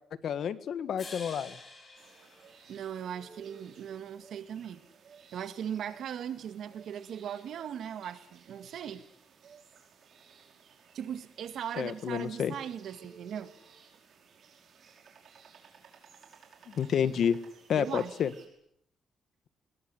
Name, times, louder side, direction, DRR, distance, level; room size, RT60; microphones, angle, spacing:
voice 1, 0.2-1.6 11.8-12.5 16.7-17.4 17.7-18.3, left 8 dB, 55° left, 13 dB, 1.6 m, -29 dB
sound 1, 1.0-3.3, left 3 dB, 30° left, 6.6 m, -49 dB
sound 2, 2.0-18.5, right 6 dB, 50° right, 5.7 m, -57 dB
voice 2, 2.7-4.8 5.3-9.1 10.9-13.5 17.7-18.1, right 9 dB, 65° right, 11 dB, 2.0 m, -39 dB
24.0 x 21.0 x 9.7 m, 0.70 s
cardioid pair, 150°, 0 cm